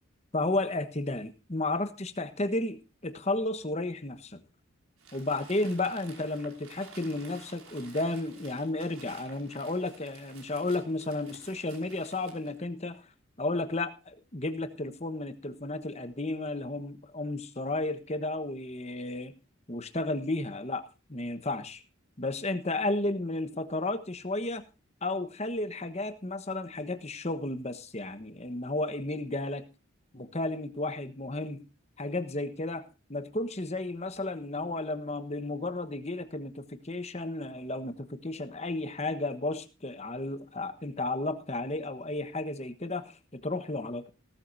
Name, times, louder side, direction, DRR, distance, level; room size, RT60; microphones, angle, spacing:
voice 1, 0.3-4.4 5.1-13.0 13.4-19.3 19.7-21.8 22.2-24.6 25.0-29.6 30.1-31.6 32.0-44.1, left 2 dB, 30° left, 9 dB, 1.3 m, -33 dB
Crumpling crinkling, 5.0-12.6, right 4 dB, 85° right, 5.3 m, -53 dB
17.5 x 13.0 x 2.7 m, 0.32 s
head